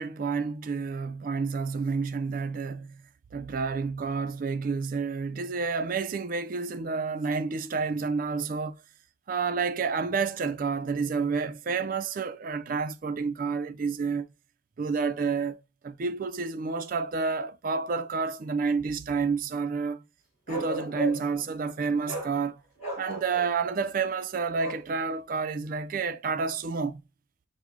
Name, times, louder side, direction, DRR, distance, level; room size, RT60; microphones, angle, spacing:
voice 1, 0.0-3.0 3.3-8.8 9.3-14.3 14.8-20.0 20.5-22.6 23.0-27.0, right 5 dB, 45° right, 0.3 m, -29 dB
Bark, 20.5-21.4 22.1-22.3 22.8-23.5 24.6-24.8, right 2 dB, 35° left, 2.7 m, -34 dB
6.1 x 2.1 x 3.4 m
head